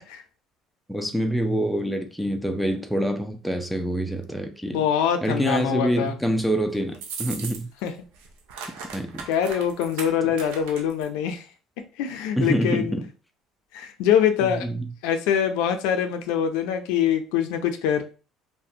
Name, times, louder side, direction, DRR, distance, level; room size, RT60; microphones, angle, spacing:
voice 1, 0.9-4.8 5.2-7.7 8.9-9.3 12.4-13.1 14.4-14.9, equal, ahead, 0.4 m, -26 dB
voice 2, 4.7-6.1 7.8-7.9 9.3-11.5 12.0-13.0 13.7-14.7 15.0-18.0, left 8 dB, 85° left, 0.4 m, -24 dB
sound 1, 6.9-7.9 8.1-11.1, right 5 dB, 90° right, 0.5 m, -37 dB
2.4 x 2.1 x 2.7 m
cardioid pair, 105°, 0 cm